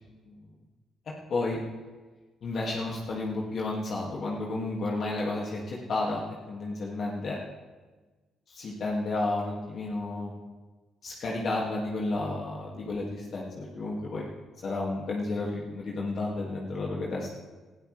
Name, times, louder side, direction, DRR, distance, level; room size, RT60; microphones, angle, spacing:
voice 1, 2.4-7.4 8.5-10.3 11.0-14.3 14.6-17.3, left 2 dB, 55° left, -3 dB, 2.2 m, -32 dB
19.5 x 13.0 x 3.4 m, 1.3 s
cardioid pair, 90°, 0 cm